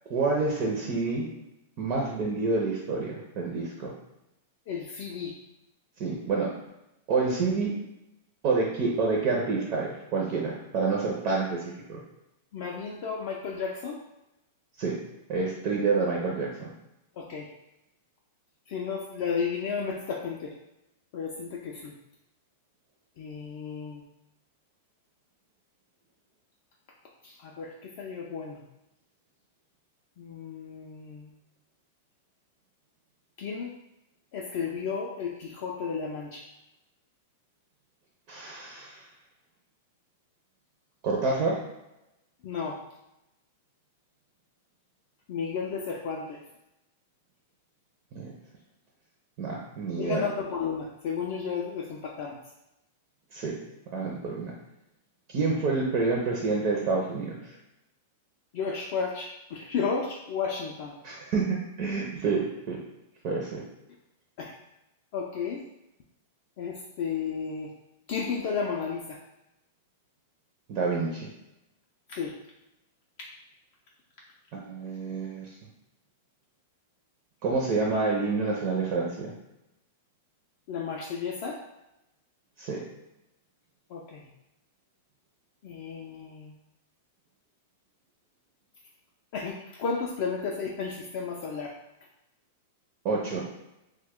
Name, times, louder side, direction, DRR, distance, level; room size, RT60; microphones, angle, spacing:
voice 1, 0.1-1.3 1.8-3.9 6.0-6.5 7.1-7.7 8.4-12.0 14.8-15.0 15.3-16.5 38.3-39.0 41.0-41.6 48.1-48.3 49.4-50.2 53.3-53.6 53.9-54.5 55.3-57.4 61.0-62.8 63.2-63.6 70.7-71.3 74.5-75.5 77.4-79.3 82.6-82.8 93.0-93.5, right 4 dB, 30° right, -2 dB, 0.5 m, -28 dB
voice 2, 4.7-5.3 12.5-14.0 17.2-17.5 18.7-20.5 21.1-21.9 23.2-24.0 27.2-28.7 30.2-31.3 33.4-33.7 34.3-36.5 42.4-42.8 45.3-46.4 50.0-52.4 58.5-60.9 64.4-64.6 65.1-65.6 66.6-67.7 68.1-69.2 72.1-72.3 80.7-81.6 83.9-84.3 85.6-86.5 89.3-91.7, left 5 dB, 40° left, -2 dB, 0.4 m, -33 dB
3.1 x 2.1 x 3.5 m, 0.90 s
supercardioid pair, 175°, 0 cm